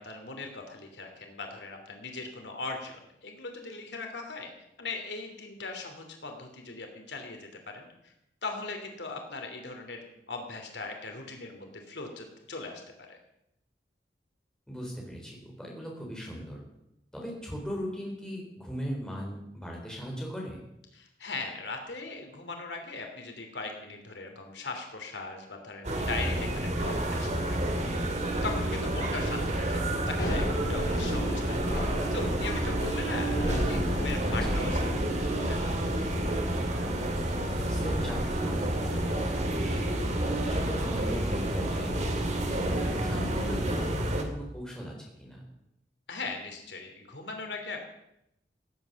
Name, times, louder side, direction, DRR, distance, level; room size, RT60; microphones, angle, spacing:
voice 1, 0.0-4.5 4.8-8.1 8.4-12.8 13.1-13.2 20.9-27.7 28.4-31.6 32.1-35.9 46.1-47.8, left 3 dB, 80° left, 4 dB, 2.9 m, -39 dB
voice 2, 14.7-16.6 17.1-20.6 34.3-34.7 37.5-39.9 40.4-41.9 42.2-45.4, equal, 5° left, -2 dB, 4.3 m, -39 dB
sound 1, 25.8-44.2, right 1 dB, 40° right, 2.2 m, -29 dB
Thunder / Rain, 30.0-43.2, equal, 55° left, 5.9 m, -37 dB
17.0 x 8.8 x 7.1 m, 0.81 s
head